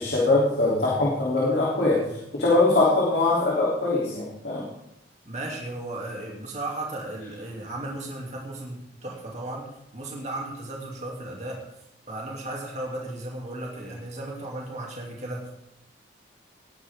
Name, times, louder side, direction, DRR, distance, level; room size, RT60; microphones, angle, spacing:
voice 1, 0.0-4.7, left 2 dB, 60° left, -6 dB, 3.2 m, -22 dB
voice 2, 5.2-11.6 12.1-15.5, right 2 dB, 40° right, -2 dB, 2.8 m, -35 dB
19.5 x 10.5 x 3.7 m, 0.84 s
head